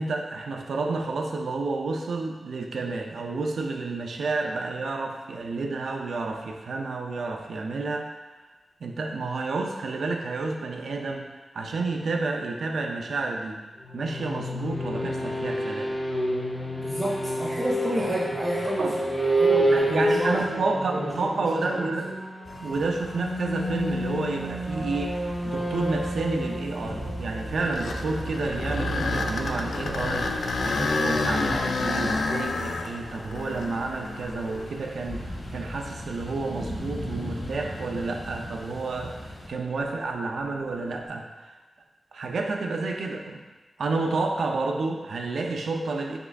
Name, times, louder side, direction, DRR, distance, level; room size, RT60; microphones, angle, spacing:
voice 1, 0.0-8.1 8.8-11.2 11.5-13.6 13.9-15.9 18.8-18.9 19.7-22.1 22.6-41.6 42.1-43.4 43.8-46.2, right 3 dB, 75° right, 2 dB, 0.4 m, -30 dB
sound 1, 13.8-28.5, right 1 dB, 15° left, 0.6 m, -29 dB
voice 2, 16.8-21.7, equal, 15° right, -8 dB, 0.8 m, -31 dB
sound 2, 22.4-39.5, right 1 dB, 60° left, 0.9 m, -38 dB
sound 3, 27.5-35.5 36.1-36.2 36.9-37.1 40.6-41.0, left 3 dB, 75° left, 0.3 m, -29 dB
5.4 x 3.4 x 2.3 m, 1.2 s
wide cardioid pair, 150°, 0 cm